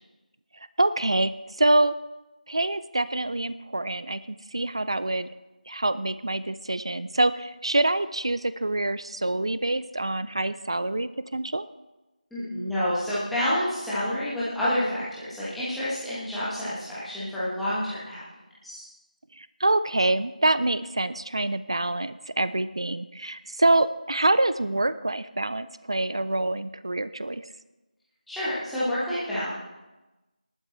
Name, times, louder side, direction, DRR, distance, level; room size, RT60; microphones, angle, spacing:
voice 1, 0.8-1.9 2.5-5.3 5.7-11.7 19.3-27.4, right 2 dB, 35° right, 14 dB, 0.5 m, -26 dB
voice 2, 12.3-18.2 18.6-18.8 28.3-29.6, left 1 dB, ahead, -13 dB, 1.4 m, -28 dB
19.0 x 12.0 x 3.3 m, 1.1 s
figure-of-eight pair, 170°, 5 cm